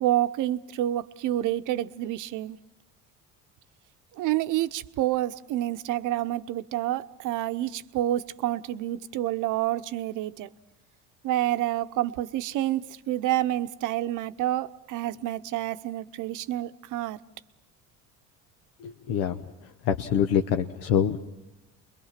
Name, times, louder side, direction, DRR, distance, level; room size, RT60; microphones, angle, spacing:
voice 1, 0.0-2.6 4.2-10.5 11.2-17.2, right 14 dB, 65° right, 0.8 m, -28 dB
voice 2, 18.8-19.4 19.9-21.2, left 8 dB, 90° left, 1.0 m, -25 dB
29.5 x 22.5 x 5.8 m
cardioid pair, 120°, 34 cm